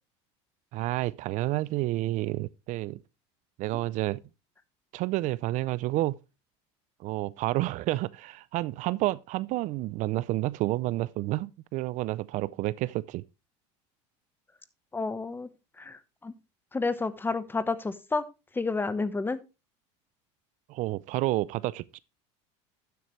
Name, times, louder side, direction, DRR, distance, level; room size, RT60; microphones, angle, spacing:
voice 1, 0.7-3.0 3.6-4.2 4.9-6.2 7.0-13.2 20.7-22.0, right 17 dB, 55° right, 0.4 m, -30 dB
voice 2, 14.9-15.5 15.8-16.3 16.7-18.3 18.5-19.4, left 3 dB, 15° left, 0.9 m, -30 dB
12.0 x 7.8 x 3.1 m
supercardioid pair, 110°, 15 cm